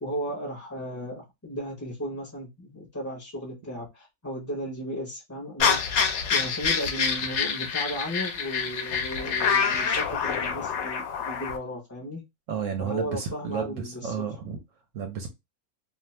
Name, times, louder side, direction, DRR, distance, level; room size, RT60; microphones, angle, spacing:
voice 1, 0.0-6.0 6.3-12.2 12.8-14.1, equal, 20° left, 0.5 m, -35 dB
sound 1, 5.6-11.6, left 6 dB, 65° left, 0.7 m, -26 dB
voice 2, 12.5-14.6 14.9-15.3, right 7 dB, 65° right, 0.8 m, -32 dB
2.6 x 2.3 x 3.0 m
omnidirectional pair, 1.7 m